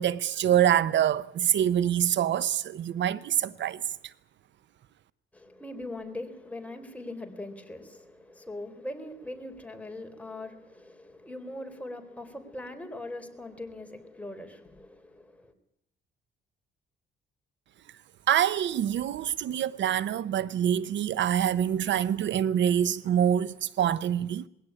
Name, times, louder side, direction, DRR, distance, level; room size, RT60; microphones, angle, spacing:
voice 1, 0.0-3.8 18.3-24.5, right 10 dB, 70° right, 0.8 m, -25 dB
voice 2, 5.3-15.5, left 1 dB, 5° left, 3.6 m, -41 dB
21.0 x 17.0 x 9.8 m
cardioid pair, 90°, 20 cm